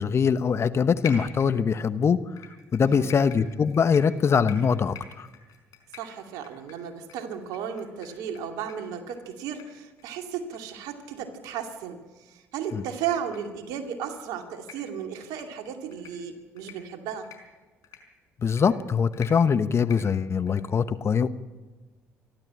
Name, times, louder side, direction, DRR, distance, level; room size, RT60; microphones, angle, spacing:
voice 1, 0.0-2.2 2.7-5.3 12.7-12.8 18.4-21.3, left 6 dB, 40° left, 12 dB, 1.1 m, -23 dB
sound 1, 1.0-1.9 2.4-8.4 8.7-8.8 9.1-9.2 9.6-9.7 10.0-10.1 10.5-10.6 11.0-11.1 11.5-11.6 12.6-12.7 13.2-13.4 13.9-14.1 14.5-14.8 15.2-15.5 15.9-16.1 16.6-16.8 17.2-17.4 17.8-18.0 18.5-18.6 19.1-19.3 19.8-20.0 20.5-20.6, left 9 dB, 60° left, 5.0 m, -44 dB
voice 2, 2.8-3.2 5.9-17.3, right 8 dB, 70° right, 4 dB, 2.5 m, -35 dB
27.0 x 12.0 x 8.7 m, 1.3 s
hypercardioid pair, 60°, 7 cm